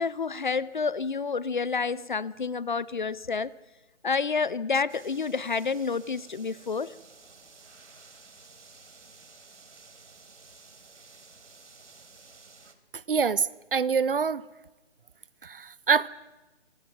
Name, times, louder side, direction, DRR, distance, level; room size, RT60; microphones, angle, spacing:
voice 1, 0.0-3.5 4.0-6.9, left 5 dB, 45° left, 0.7 m, -29 dB
sound 1, 4.9-12.7, right 4 dB, 90° right, 3.4 m, -53 dB
voice 2, 12.9-14.5 15.4-16.1, right 6 dB, 50° right, 0.8 m, -26 dB
26.0 x 25.0 x 6.0 m
hypercardioid pair, 170°, 35 cm